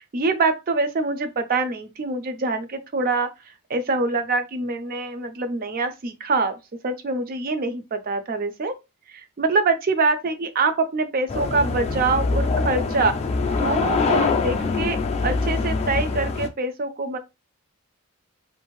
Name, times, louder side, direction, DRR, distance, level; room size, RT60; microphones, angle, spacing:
voice 1, 0.1-3.3 3.7-6.6 6.8-8.7 9.1-13.1 13.6-15.0 15.2-17.2, right 3 dB, 40° right, 0.4 m, -24 dB
sound 1, 11.3-16.5, left 4 dB, 30° left, 0.3 m, -24 dB
2.6 x 2.4 x 3.0 m
head